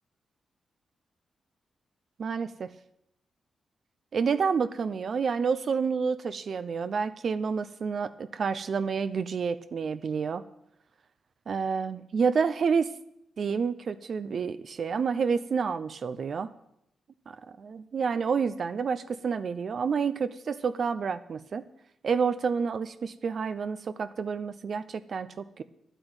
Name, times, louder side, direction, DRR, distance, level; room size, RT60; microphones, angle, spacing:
voice 1, 2.2-2.7 4.1-10.4 11.5-12.9 13.4-16.5 17.3-21.7 22.0-25.6, right 5 dB, 55° right, 12 dB, 0.6 m, -29 dB
11.0 x 9.1 x 8.9 m, 0.79 s
cardioid pair, 110°, 0 cm